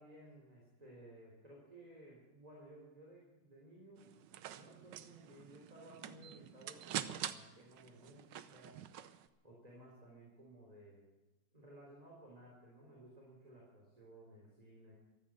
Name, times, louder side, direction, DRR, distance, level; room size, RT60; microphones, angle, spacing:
voice 1, 0.0-4.1 4.5-8.8 9.4-11.1 11.5-15.0, right 1 dB, 20° right, -3 dB, 3.7 m, -57 dB
sound 1, 4.0-9.3, right 11 dB, 80° right, 1.4 m, -46 dB
14.0 x 13.5 x 7.5 m, 1.1 s
omnidirectional pair, 1.9 m